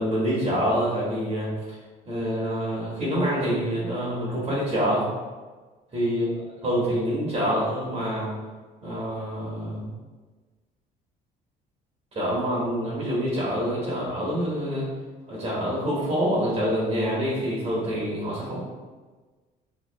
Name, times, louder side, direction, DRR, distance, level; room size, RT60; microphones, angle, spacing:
voice 1, 0.0-1.5 2.1-5.0 5.9-6.3 6.6-8.3 8.8-9.8 12.1-14.9 15.3-18.6, equal, 40° right, -6 dB, 1.3 m, -26 dB
3.1 x 2.8 x 3.9 m, 1.3 s
cardioid pair, 110°, 17 cm